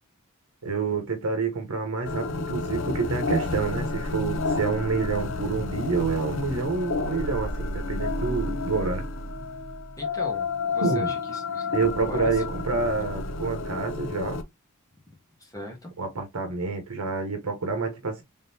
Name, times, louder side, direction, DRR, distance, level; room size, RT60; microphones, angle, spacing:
voice 1, 0.6-9.0 10.8-11.1 11.7-14.4 16.0-18.2, right 4 dB, 85° right, 0.9 m, -28 dB
sound 1, 2.0-14.4, left 3 dB, 60° left, 0.5 m, -30 dB
voice 2, 10.0-11.7 12.0-12.4 15.4-15.9, left 1 dB, 15° left, 1.2 m, -40 dB
3.7 x 3.6 x 2.7 m
head